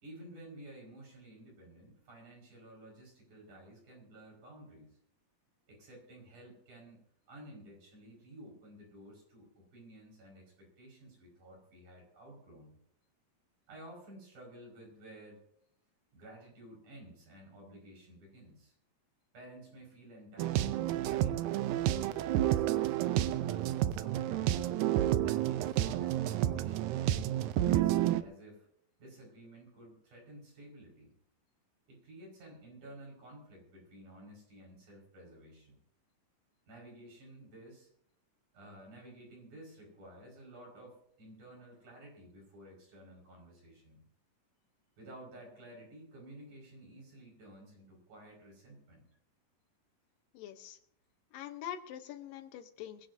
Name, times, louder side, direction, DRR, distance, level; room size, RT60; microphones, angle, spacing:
voice 1, 0.0-5.0 5.7-7.0 7.3-12.7 13.7-15.4 16.1-18.7 19.3-21.6 21.9-24.4 25.2-27.4 27.7-28.7 29.0-31.1 31.9-35.8 36.7-37.9 38.5-44.0 45.0-49.1, right 1 dB, 60° right, 0 dB, 6.7 m, -53 dB
sound 1, 20.4-28.2, right 13 dB, 80° right, 1.7 m, -30 dB
voice 2, 50.3-50.8 51.3-53.1, left 10 dB, 80° left, 9 dB, 2.7 m, -44 dB
22.5 x 16.0 x 2.7 m, 0.67 s
omnidirectional pair, 3.9 m